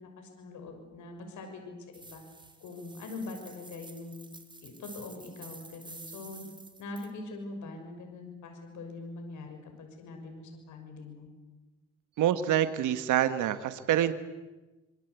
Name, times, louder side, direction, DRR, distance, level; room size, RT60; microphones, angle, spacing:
voice 1, 0.0-2.2 2.6-4.3 4.6-6.5 6.8-11.3, left 3 dB, 75° left, 4 dB, 6.2 m, -43 dB
sound 1, 1.9-7.1, right 2 dB, 15° right, 3.5 m, -50 dB
voice 2, 12.2-14.1, right 11 dB, 80° right, 10 dB, 1.4 m, -26 dB
25.5 x 24.0 x 8.2 m, 1.1 s
cardioid pair, 90°, 30 cm